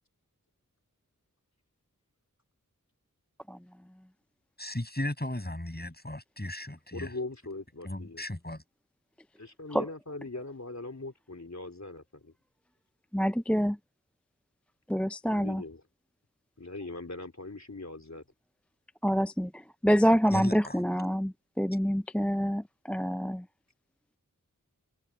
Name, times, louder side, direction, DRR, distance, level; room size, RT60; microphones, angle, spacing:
voice 1, 4.6-7.1 7.8-8.6 20.3-20.8, left 1 dB, 30° left, 7.2 m, -36 dB
voice 2, 6.9-8.2 9.4-12.3 15.2-15.8 16.6-18.2, left 2 dB, 55° left, 3.4 m, -41 dB
voice 3, 13.1-13.8 14.9-15.6 19.0-19.5 19.8-23.4, equal, 5° left, 0.4 m, -26 dB
wide cardioid pair, 40°, 33 cm